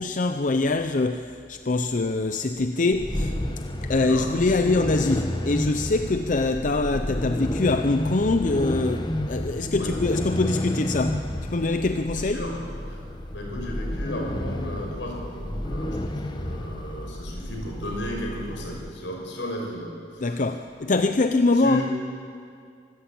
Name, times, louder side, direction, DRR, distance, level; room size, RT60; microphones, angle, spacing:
voice 1, 0.0-3.3 3.8-12.4 20.2-21.8, left 2 dB, 45° left, 8 dB, 0.6 m, -24 dB
sound 1, 2.9-18.9, left 1 dB, 25° left, 1.2 m, -31 dB
voice 2, 3.8-4.4 9.8-10.0 12.1-12.6 12.9-13.0 13.3-20.4 21.5-21.8, left 1 dB, 75° left, 0 dB, 5.7 m, -34 dB
24.5 x 14.0 x 8.5 m, 2.3 s
head